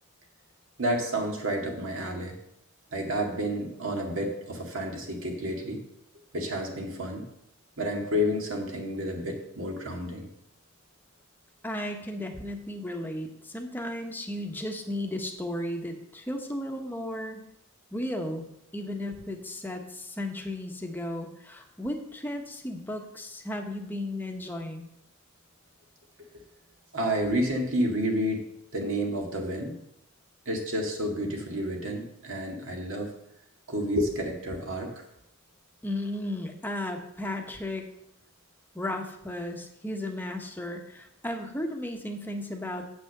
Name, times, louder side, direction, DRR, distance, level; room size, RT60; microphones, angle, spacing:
voice 1, 0.8-2.3 2.9-5.8 6.3-7.2 7.8-10.3 26.9-28.4 28.7-29.8 30.5-33.1 33.7-35.0, equal, 70° right, 2 dB, 2.0 m, -30 dB
voice 2, 11.6-17.4 17.9-18.5 18.7-24.9 35.8-37.9 38.7-42.9, left 1 dB, 10° left, 3 dB, 1.0 m, -34 dB
8.3 x 6.1 x 6.6 m, 0.79 s
head